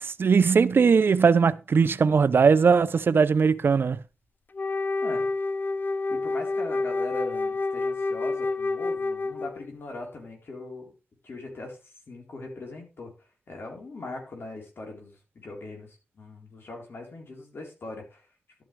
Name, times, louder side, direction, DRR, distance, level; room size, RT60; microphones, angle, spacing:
voice 1, 0.0-4.0, right 5 dB, 60° right, 0.5 m, -20 dB
Wind instrument woodwind instrument, 4.5-9.7, left 3 dB, 50° left, 0.6 m, -28 dB
voice 2, 6.1-10.9 11.2-11.8 12.1-13.1 13.5-18.2, left 2 dB, 65° left, 4.1 m, -40 dB
12.0 x 9.2 x 3.4 m
cardioid pair, 65°, 4 cm